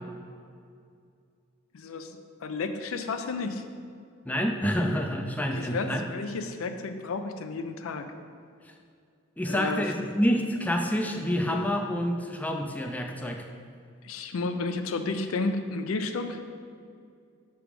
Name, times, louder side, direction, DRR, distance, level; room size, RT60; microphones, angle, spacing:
voice 1, 1.7-3.6 5.4-8.1 9.5-9.9 14.0-16.4, left 3 dB, 85° left, 8 dB, 0.5 m, -32 dB
voice 2, 4.2-6.0 9.4-13.4, equal, 10° left, 3 dB, 0.4 m, -28 dB
6.0 x 3.4 x 4.9 m, 2.3 s
head